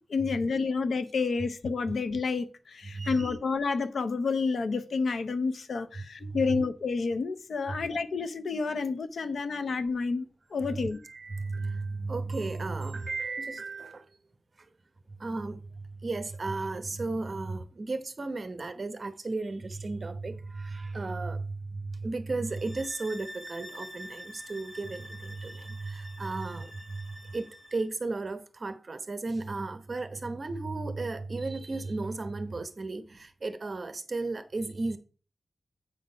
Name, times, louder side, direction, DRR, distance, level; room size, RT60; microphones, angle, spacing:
voice 1, 0.0-10.3 10.5-11.0, left 4 dB, 80° left, 0.7 m, -29 dB
voice 2, 2.9-3.3 6.2-6.4 7.7-7.8 11.0-14.0 15.2-15.6 16.0-35.0, right 3 dB, 40° right, 0.9 m, -34 dB
sound 1, 22.5-27.9, equal, 20° left, 1.8 m, -46 dB
8.4 x 3.9 x 5.5 m
wide cardioid pair, 130°, 0 cm